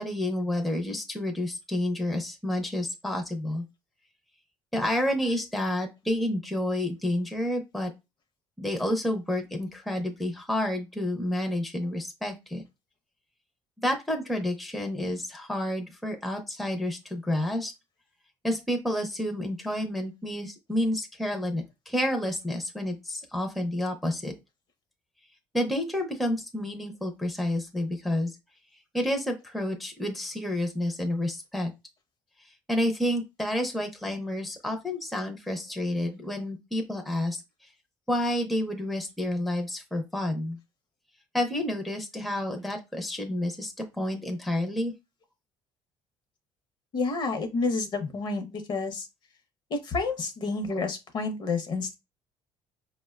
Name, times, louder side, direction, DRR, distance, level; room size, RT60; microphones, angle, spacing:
voice 1, 0.0-3.6 4.7-7.9 8.6-12.6 13.8-17.7 18.4-24.3 25.5-28.3 28.9-31.7 32.7-37.4 38.1-40.6 41.3-44.9, left 1 dB, ahead, 0.5 m, -29 dB
voice 2, 46.9-49.1 49.7-52.0, left 3 dB, 45° left, 0.7 m, -29 dB
4.8 x 2.1 x 2.3 m
cardioid pair, 135°, 11 cm